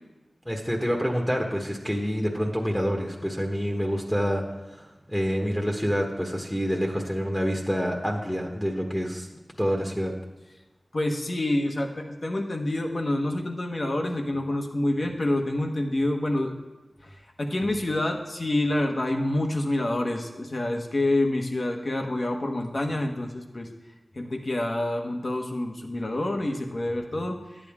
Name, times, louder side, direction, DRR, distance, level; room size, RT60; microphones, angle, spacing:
voice 1, 0.4-9.3 9.6-10.1, equal, 5° left, 1 dB, 1.2 m, -27 dB
voice 2, 10.9-16.5 17.0-23.7 24.1-27.4, left 1 dB, 50° left, 2 dB, 1.3 m, -27 dB
11.0 x 8.8 x 3.6 m, 1.1 s
wide cardioid pair, 70°, 0 cm